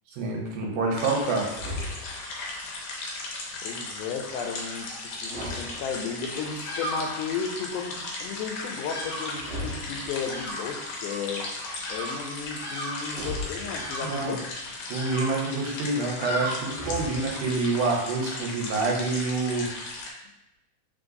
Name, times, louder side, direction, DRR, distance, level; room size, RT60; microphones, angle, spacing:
voice 1, 0.2-1.5 14.0-14.3 14.9-19.7, right 3 dB, 90° right, -1 dB, 2.3 m, -27 dB
sound 1, 1.0-20.1, left 2 dB, 70° left, 1.7 m, -37 dB
sound 2, 1.5-2.4 5.1-6.5 9.3-10.5 13.0-14.3 16.6-17.6, left 1 dB, 70° right, 1.6 m, -38 dB
voice 2, 3.6-4.9 5.2-11.5 11.9-14.4, left 6 dB, 90° left, 4 dB, 2.1 m, -34 dB
Bird vocalization bird call bird song, 6.3-17.3, equal, 55° left, 1.2 m, -38 dB
4.2 x 3.8 x 2.6 m, 0.87 s
omnidirectional pair, 3.5 m